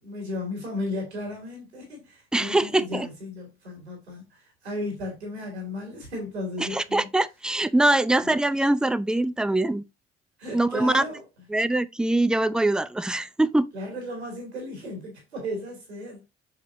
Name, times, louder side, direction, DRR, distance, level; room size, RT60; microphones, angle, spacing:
voice 1, 0.0-7.1 8.2-8.3 10.4-11.2 13.7-16.2, left 1 dB, 85° right, 2.7 m, -35 dB
voice 2, 2.3-3.1 6.6-9.8 10.5-11.0 11.5-13.7, right 2 dB, ahead, 0.6 m, -23 dB
7.5 x 6.5 x 2.5 m
figure-of-eight pair, 55°, 32 cm